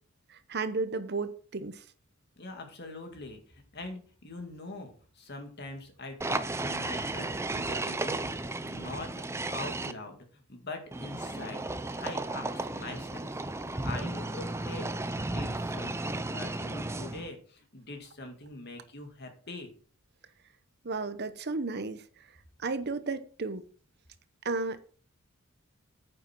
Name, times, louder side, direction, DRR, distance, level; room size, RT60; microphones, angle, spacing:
voice 1, 0.3-1.8 20.8-22.0 22.6-23.7 24.4-24.8, right 3 dB, 50° right, 12 dB, 0.8 m, -33 dB
voice 2, 2.4-13.3 13.8-14.9 15.2-19.7, left 2 dB, 50° left, 4 dB, 2.2 m, -43 dB
sound 1, 6.2-9.9 10.9-17.3, right 2 dB, 10° right, 0.5 m, -34 dB
9.3 x 7.0 x 4.5 m, 0.43 s
head